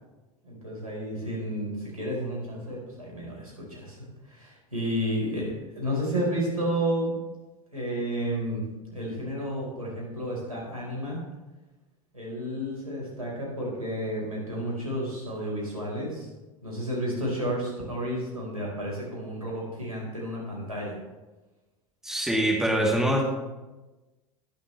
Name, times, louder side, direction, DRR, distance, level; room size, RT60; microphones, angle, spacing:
voice 1, 0.4-7.1 7.7-8.6 8.9-11.2 12.1-16.3 16.6-21.0, equal, 85° right, -4 dB, 4.5 m, -31 dB
voice 2, 22.0-23.2, right 1 dB, 5° right, -3 dB, 2.7 m, -24 dB
20.5 x 7.3 x 3.3 m, 1.1 s
figure-of-eight pair, 80°, 18 cm